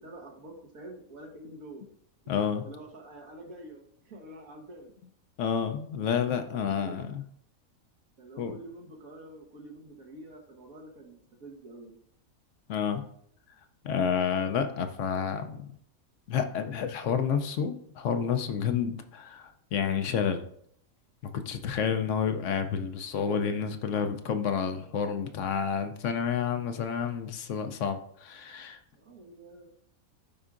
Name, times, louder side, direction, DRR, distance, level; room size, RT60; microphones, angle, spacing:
voice 1, 0.0-1.8 2.3-4.9 6.8-7.1 8.2-12.0 28.9-29.7, right 1 dB, 80° right, 1 dB, 1.6 m, -47 dB
voice 2, 2.3-2.6 5.4-7.2 8.4-8.5 12.7-13.0 13.8-15.7 16.3-20.5 21.3-28.8, left 7 dB, 65° left, 8 dB, 0.9 m, -29 dB
12.5 x 4.8 x 2.5 m, 0.67 s
omnidirectional pair, 1.5 m